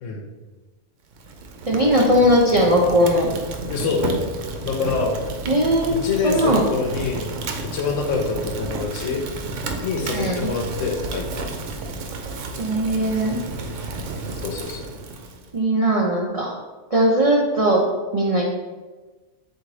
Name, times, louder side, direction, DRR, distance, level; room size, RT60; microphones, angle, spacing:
Fire, 1.1-15.5, right 3 dB, 80° right, 0.9 m, -32 dB
voice 1, 1.7-3.3 5.5-6.7 10.1-10.5 12.6-13.4 15.5-16.5 16.9-17.8 18.1-18.4, equal, 50° right, -3 dB, 0.4 m, -19 dB
voice 2, 3.7-4.3 4.6-5.2 5.9-7.3 7.7-9.3 9.8-11.2 14.4-14.8, left 4 dB, 85° left, 2 dB, 1.0 m, -25 dB
3.8 x 2.6 x 4.7 m, 1.3 s
omnidirectional pair, 1.3 m